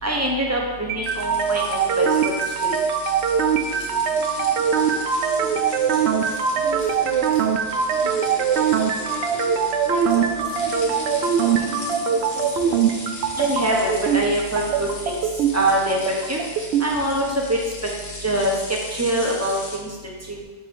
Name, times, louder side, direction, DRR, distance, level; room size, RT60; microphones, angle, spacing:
voice 1, 0.0-2.1 2.6-2.8 13.4-15.2 15.5-16.0 16.3-16.4 16.8-17.6 18.2-18.5 18.9-19.9 20.3-20.4, right 1 dB, 15° right, -2 dB, 0.9 m, -23 dB
sound 1, 0.9-16.9, right 7 dB, 85° right, 0.8 m, -22 dB
sound 2, 1.0-19.8, left 2 dB, 50° left, 1.2 m, -38 dB
voice 2, 3.7-13.1, right 2 dB, 35° left, -5 dB, 1.6 m, -38 dB
5.9 x 3.5 x 5.1 m, 1.3 s
omnidirectional pair, 1.1 m